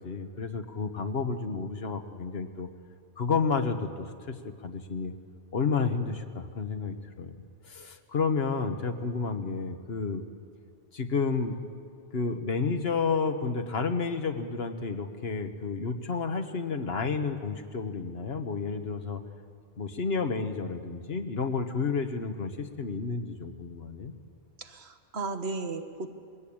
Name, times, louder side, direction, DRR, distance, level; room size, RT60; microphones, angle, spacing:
voice 1, 0.0-2.7 3.2-4.4 4.6-5.1 5.5-7.4 7.6-10.2 10.9-11.6 12.1-19.2 19.8-24.1, left 5 dB, 65° left, 7 dB, 1.4 m, -31 dB
voice 2, 24.6-26.1, right 3 dB, 70° right, 7 dB, 1.5 m, -35 dB
21.0 x 16.5 x 8.7 m, 2.2 s
omnidirectional pair, 1.1 m